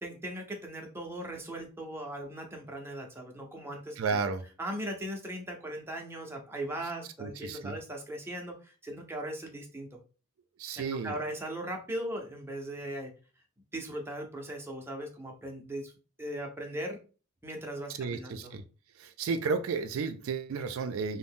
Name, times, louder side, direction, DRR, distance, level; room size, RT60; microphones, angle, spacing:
voice 1, 0.0-4.2 4.6-10.0 10.8-13.1 13.7-15.9 16.2-17.0 17.4-18.5, right 1 dB, 10° right, 1 dB, 0.5 m, -39 dB
voice 2, 4.0-4.4 7.2-7.7 10.6-11.2 18.0-18.6 19.0-21.2, right 5 dB, 75° right, 8 dB, 0.3 m, -32 dB
2.5 x 2.1 x 3.5 m, 0.35 s
head